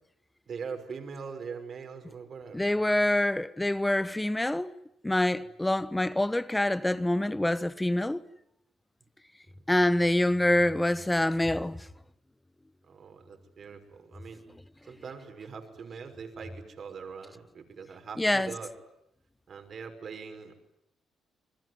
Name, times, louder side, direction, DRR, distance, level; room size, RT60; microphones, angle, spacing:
voice 1, 0.5-3.0 5.4-5.5 12.9-14.4 14.9-18.7 19.5-20.5, right 5 dB, 50° right, 5.6 m, -42 dB
voice 2, 2.5-4.7 5.0-8.2 9.7-11.8 18.2-18.5, left 1 dB, 10° left, 1.2 m, -26 dB
28.5 x 21.0 x 9.6 m
cardioid pair, 90°, 0 cm